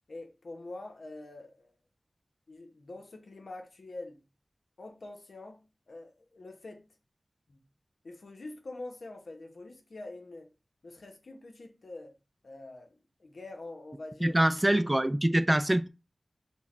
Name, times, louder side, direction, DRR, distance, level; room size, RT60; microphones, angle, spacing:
voice 1, 0.1-1.8 2.5-4.2 4.8-6.9 7.5-7.6 8.0-10.5 10.8-12.2 12.4-12.9 13.2-14.4, left 2 dB, 80° left, 0.9 m, -45 dB
voice 2, 14.2-15.9, right 1 dB, 20° right, 0.3 m, -24 dB
4.6 x 2.3 x 4.1 m
wide cardioid pair, 65°, 0 cm